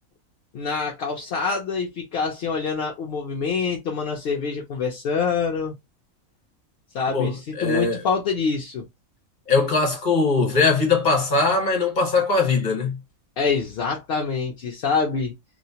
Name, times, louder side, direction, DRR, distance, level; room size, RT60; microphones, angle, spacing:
voice 1, 0.5-5.7 6.9-8.8 13.4-15.4, left 5 dB, 60° left, 0.6 m, -26 dB
voice 2, 7.1-8.0 9.5-13.0, left 4 dB, 40° left, 1.0 m, -21 dB
2.4 x 2.0 x 2.7 m
omnidirectional pair, 1.4 m